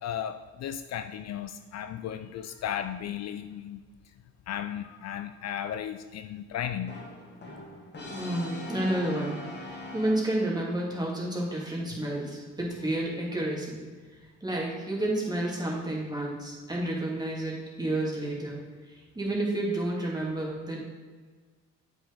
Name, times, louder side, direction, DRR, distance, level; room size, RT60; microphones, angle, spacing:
voice 1, 0.0-3.8 4.5-7.0, left 9 dB, 60° left, 9 dB, 0.5 m, -35 dB
Brass instrument, 6.9-10.7, left 2 dB, 35° left, 1.5 m, -41 dB
voice 2, 8.1-13.8 14.4-18.6 18.9-20.8, right 1 dB, 15° right, -3 dB, 2.5 m, -30 dB
8.1 x 6.0 x 4.0 m, 1.4 s
cardioid pair, 90°, 30 cm